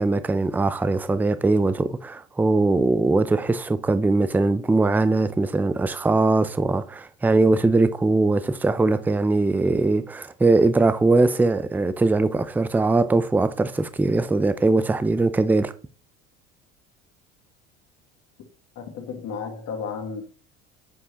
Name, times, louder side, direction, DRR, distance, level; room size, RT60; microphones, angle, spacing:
voice 1, 0.0-15.7, right 3 dB, 5° right, 0.4 m, -21 dB
voice 2, 18.8-20.2, left 5 dB, 60° left, 1.9 m, -33 dB
7.3 x 4.7 x 2.9 m
hypercardioid pair, 70°, 32 cm